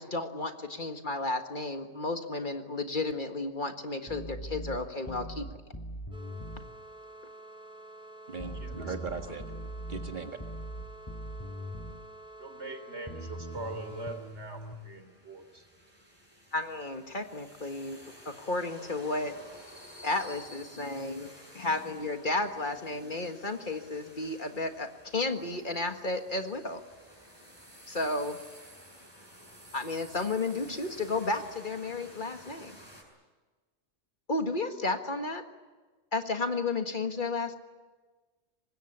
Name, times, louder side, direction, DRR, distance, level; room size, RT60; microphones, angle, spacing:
voice 1, 0.0-5.5 16.5-18.0 18.3-19.4 20.0-21.3 21.5-26.8 27.9-28.4 29.7-32.7 34.3-35.4 36.1-37.6, left 2 dB, 45° left, 6 dB, 1.8 m, -32 dB
sound 1, 4.1-6.7 8.4-12.0 13.1-14.7, right 1 dB, 20° left, 4.5 m, -41 dB
sound 2, 6.1-14.2, right 1 dB, 5° right, 4.1 m, -49 dB
voice 2, 8.3-9.5 9.9-10.4, right 4 dB, 45° right, 6 dB, 1.9 m, -38 dB
voice 3, 12.4-15.6, right 2 dB, 80° right, 7 dB, 3.6 m, -42 dB
sound 3, 13.5-33.0, equal, 20° right, 7.6 m, -53 dB
25.0 x 20.5 x 9.9 m, 1.3 s
omnidirectional pair, 1.1 m